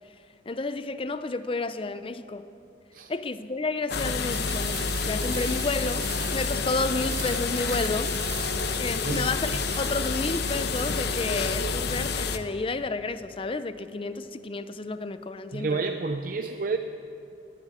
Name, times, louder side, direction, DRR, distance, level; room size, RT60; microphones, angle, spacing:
voice 1, 0.5-2.4 3.1-4.8 5.0-8.1 8.8-15.8, left 3 dB, 30° left, 12 dB, 0.5 m, -31 dB
sound 1, 3.9-12.4, left 4 dB, 60° left, 0.8 m, -29 dB
sound 2, 4.3-11.5, right 8 dB, 65° right, 1.3 m, -41 dB
voice 2, 9.0-9.6 15.5-16.8, right 4 dB, 50° right, 7 dB, 0.5 m, -30 dB
21.0 x 7.5 x 9.1 m, 2.7 s
head